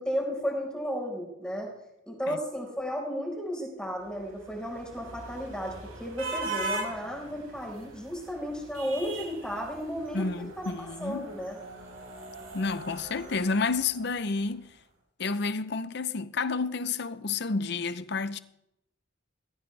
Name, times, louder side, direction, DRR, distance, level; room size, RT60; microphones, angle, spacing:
voice 1, 0.0-1.7 2.1-11.6, equal, 5° left, 4.7 m, -34 dB
sound 1, 4.1-14.4, right 2 dB, 90° right, 5.2 m, -40 dB
voice 2, 10.1-11.3 12.5-14.7 15.2-18.4, left 4 dB, 55° left, 0.7 m, -30 dB
20.5 x 15.0 x 3.4 m
head